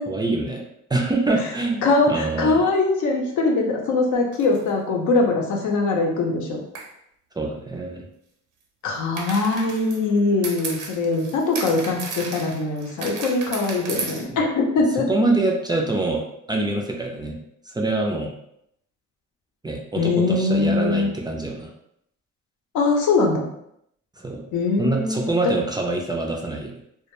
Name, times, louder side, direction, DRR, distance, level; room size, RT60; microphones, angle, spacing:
voice 1, 0.1-2.6 7.4-8.1 14.3-14.5 15.1-17.4 17.6-18.3 19.6-21.7 24.2-24.5 24.8-26.8, right 2 dB, 15° right, 0 dB, 0.3 m, -25 dB
voice 2, 1.8-6.6 8.8-15.1 20.0-21.1 22.7-23.5 24.5-25.3, left 3 dB, 75° left, 1 dB, 0.6 m, -22 dB
sound 1, 4.3-4.7 6.7-6.9 9.1-14.2, right 4 dB, 80° right, 0.6 m, -34 dB
2.2 x 2.1 x 2.9 m, 0.75 s
cardioid pair, 90°, 30 cm